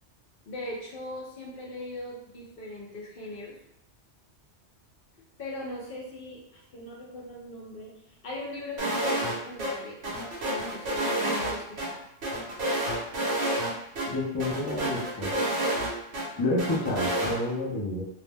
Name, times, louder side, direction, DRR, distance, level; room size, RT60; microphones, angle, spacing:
voice 1, 0.5-3.5 5.4-10.1 10.4-12.0, left 1 dB, 55° left, -4 dB, 0.8 m, -40 dB
sound 1, 8.8-9.3 9.6-9.7 10.0-11.9 12.2-13.7 14.0-14.1 14.4-16.2 16.6-17.3, right 1 dB, 85° right, 1.1 m, -29 dB
voice 2, 14.1-15.3 16.4-18.0, left 2 dB, 25° left, -5 dB, 0.5 m, -29 dB
2.7 x 2.0 x 3.4 m, 0.80 s
omnidirectional pair, 1.2 m